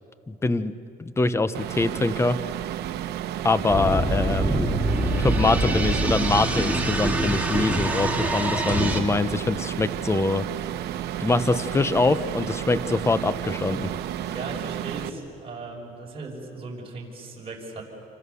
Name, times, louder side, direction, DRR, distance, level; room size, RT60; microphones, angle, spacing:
voice 1, 0.3-0.7 1.0-2.4 3.4-4.8 5.2-10.4 11.2-13.9, left 3 dB, 15° left, 13 dB, 0.9 m, -24 dB
sound 1, 1.5-15.1, right 11 dB, 75° right, 1.0 m, -32 dB
sound 2, 3.7-9.0, right 2 dB, 10° right, 2.6 m, -25 dB
voice 2, 14.3-17.8, right 3 dB, 35° right, -1 dB, 6.1 m, -37 dB
28.5 x 25.5 x 7.0 m, 2.9 s
cardioid pair, 110°, 17 cm